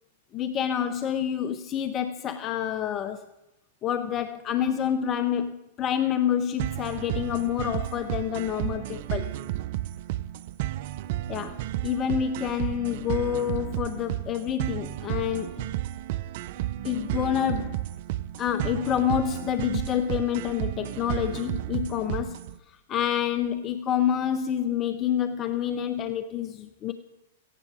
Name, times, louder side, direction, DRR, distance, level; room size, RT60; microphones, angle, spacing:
voice 1, 0.3-3.2 3.8-9.3 11.3-15.7 16.8-17.8 18.4-26.9, left 9 dB, 30° left, 10 dB, 0.9 m, -28 dB
sound 1, 6.6-22.6, right 14 dB, 55° right, 0.6 m, -32 dB
17.0 x 16.0 x 5.0 m, 0.92 s
hypercardioid pair, 115°, 0 cm